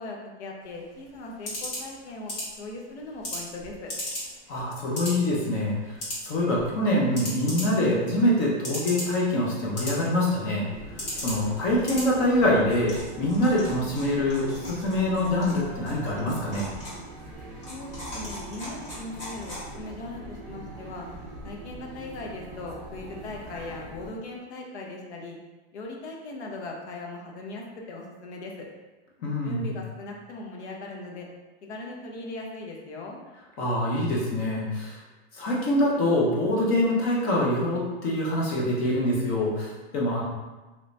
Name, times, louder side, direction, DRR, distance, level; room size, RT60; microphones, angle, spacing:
voice 1, 0.0-2.3 2.6-3.9 17.7-21.1 21.4-25.4 25.7-28.6 29.4-31.3 31.7-33.2, left 2 dB, 85° left, 0 dB, 0.9 m, -39 dB
sound 1, 0.6-20.0, left 1 dB, 40° left, 1.4 m, -39 dB
voice 2, 4.5-5.8 6.2-10.7 10.9-16.7 29.2-29.7 33.6-35.0 35.3-40.2, left 1 dB, 25° left, -4 dB, 0.5 m, -25 dB
sound 2, 10.7-24.1, right 1 dB, 25° right, 0.6 m, -42 dB
3.0 x 2.6 x 3.1 m, 1.2 s
supercardioid pair, 170°, 32 cm